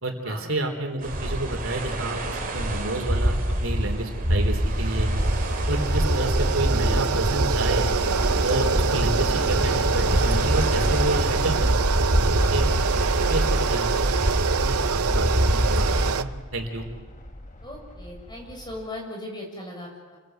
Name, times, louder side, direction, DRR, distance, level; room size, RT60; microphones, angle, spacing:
voice 1, 0.0-5.1 5.7-7.9 8.4-11.8 12.3-12.8 13.3-14.1 14.6-16.9, right 1 dB, 60° right, 3 dB, 3.8 m, -30 dB
sound 1, 1.0-16.1, equal, 40° right, 3.2 m, -25 dB
sound 2, 3.6-18.9, left 1 dB, 35° left, 1.9 m, -35 dB
sound 3, 4.6-16.2, right 5 dB, 90° right, 0.8 m, -25 dB
voice 2, 6.7-7.1 12.4-12.7 17.6-20.2, left 1 dB, 20° left, -1 dB, 7.2 m, -38 dB
30.0 x 23.0 x 8.0 m, 1.3 s
head